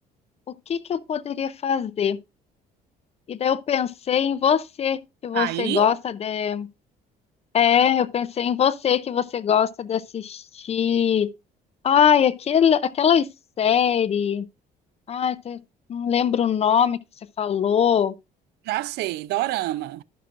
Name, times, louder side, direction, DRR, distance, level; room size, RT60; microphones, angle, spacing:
voice 1, 0.5-2.2 3.3-6.7 7.5-11.3 11.8-13.3 13.6-14.5 15.1-15.6 15.9-17.0 17.4-18.1, left 8 dB, 40° left, 0.5 m, -22 dB
voice 2, 5.3-5.9 18.6-20.0, right 16 dB, 75° right, 0.4 m, -27 dB
12.0 x 5.8 x 2.5 m
cardioid pair, 110°, 17 cm